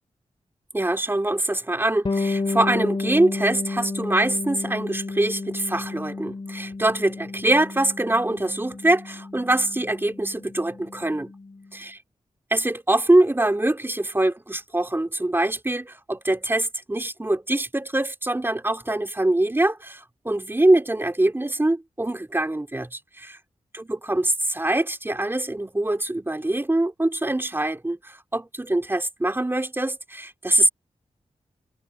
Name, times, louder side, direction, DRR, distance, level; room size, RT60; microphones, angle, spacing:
voice 1, 0.7-11.3 11.7-11.9 12.5-23.4 23.7-30.7, right 1 dB, 20° right, 2.8 m, -23 dB
Bass guitar, 2.0-11.7, left 3 dB, 40° left, 2.7 m, -32 dB
cardioid pair, 75°, 12 cm